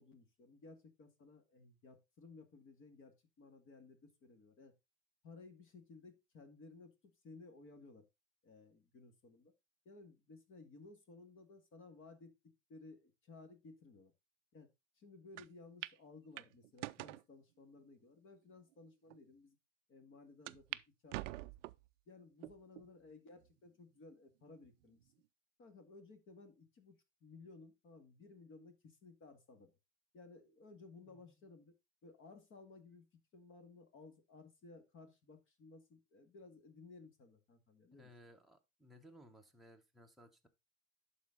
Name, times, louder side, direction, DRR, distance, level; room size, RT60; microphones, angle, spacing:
voice 1, 0.0-4.7 5.2-8.1 8.4-9.5 9.9-14.1 14.5-14.7 15.0-19.6 19.9-21.4 22.1-25.1 25.6-29.7 30.1-31.7 32.0-33.1 33.3-38.1, left 3 dB, 30° left, 2.1 m, -58 dB
sound 1, 15.4-15.5 15.8-16.0 16.4-17.2 17.9-18.0 18.7-18.8 19.1-19.2 20.5-20.8 21.1-21.9 22.4-22.9 23.4-23.5 24.6-25.1, right 17 dB, 70° right, 0.5 m, -45 dB
voice 2, 30.9-31.4 37.9-40.5, equal, ahead, 1.2 m, -61 dB
11.5 x 4.4 x 3.8 m
hypercardioid pair, 110°, 38 cm